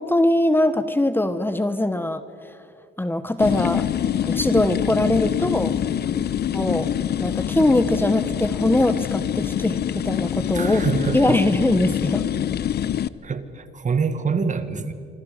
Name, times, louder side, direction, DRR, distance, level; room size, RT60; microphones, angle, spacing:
voice 1, 0.0-2.6 3.0-3.9 4.2-5.7 6.5-6.9 7.2-10.8 11.1-12.2, left 1 dB, 10° left, 11 dB, 1.0 m, -22 dB
sound 1, 3.4-13.1, left 10 dB, 55° left, 0.7 m, -25 dB
voice 2, 10.5-11.5 13.2-14.9, right 5 dB, 40° right, 10 dB, 1.7 m, -25 dB
27.0 x 25.0 x 5.1 m, 2.5 s
cardioid pair, 90°, 20 cm